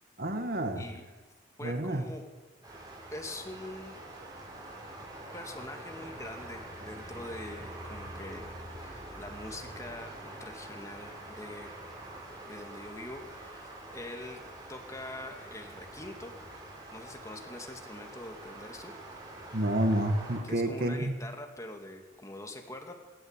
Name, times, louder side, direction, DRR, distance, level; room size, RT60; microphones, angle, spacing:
voice 1, 0.2-0.8 1.6-2.0 19.5-21.1, right 1 dB, 50° right, 6 dB, 2.0 m, -29 dB
voice 2, 1.6-2.2 3.1-4.0 5.3-11.7 12.5-14.4 14.7-16.3 16.9-18.9 20.4-22.9, left 1 dB, 15° left, 3 dB, 2.3 m, -44 dB
sound 1, 2.6-20.4, right 1 dB, 20° right, 6.4 m, -45 dB
27.0 x 12.5 x 9.1 m, 1.3 s
head